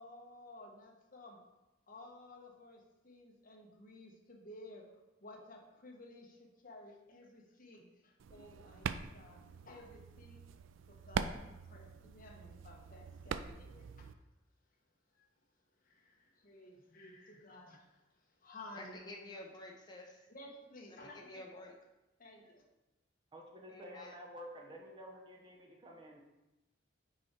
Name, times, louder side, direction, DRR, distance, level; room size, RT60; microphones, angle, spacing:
voice 1, 0.0-1.4 1.9-4.8 5.2-10.4 10.9-14.1 15.1-15.3 15.8-19.1 20.3-21.6 22.2-22.6, left 1 dB, 45° left, 1.2 m, -55 dB
sound 1, 8.2-14.1, right 6 dB, 85° right, 0.4 m, -43 dB
voice 2, 18.7-20.3 20.9-21.7 23.7-24.2, left 1 dB, 20° left, 1.0 m, -50 dB
voice 3, 23.3-26.2, equal, 25° right, 0.9 m, -51 dB
6.2 x 4.8 x 4.4 m
head